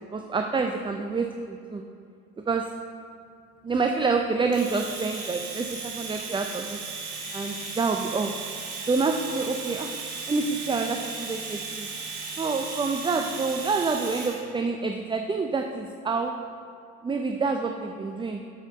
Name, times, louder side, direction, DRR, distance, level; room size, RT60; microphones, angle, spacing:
voice 1, 0.1-1.8 2.5-2.6 3.6-6.8 7.3-8.3 8.9-9.9 10.3-11.9 12.4-16.3 17.0-18.4, right 4 dB, 10° right, 4 dB, 0.5 m, -27 dB
Domestic sounds home sounds, 4.5-14.4, right 4 dB, 50° right, 2.5 m, -36 dB
8.2 x 7.1 x 5.4 m, 2.4 s
hypercardioid pair, 65°, 45 cm